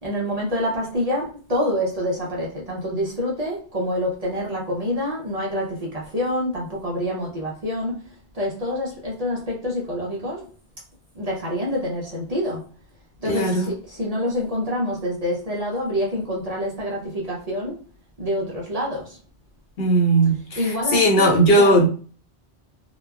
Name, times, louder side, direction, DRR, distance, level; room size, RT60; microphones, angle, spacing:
voice 1, 0.0-8.1 8.3-10.4 11.1-12.6 13.2-17.8 18.2-19.2 20.6-21.8, left 1 dB, 45° right, -3 dB, 0.6 m, -27 dB
voice 2, 13.3-13.7 19.8-21.9, right 1 dB, 65° left, -1 dB, 0.9 m, -18 dB
2.9 x 2.1 x 2.2 m, 0.40 s
omnidirectional pair, 1.1 m